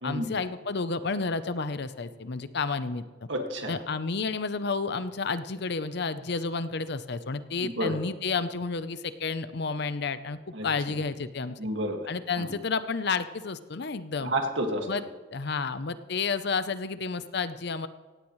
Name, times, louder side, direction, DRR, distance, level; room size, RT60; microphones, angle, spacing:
voice 1, 0.0-3.0 3.7-11.6 12.1-14.3 14.9-15.0 15.3-17.9, left 4 dB, 60° left, 12 dB, 0.7 m, -31 dB
voice 2, 3.3-3.7 7.6-8.0 10.5-11.0 11.6-12.1 12.4-12.5 14.2-14.9, right 1 dB, 70° right, 3 dB, 2.0 m, -30 dB
17.0 x 16.0 x 3.2 m, 1.3 s
head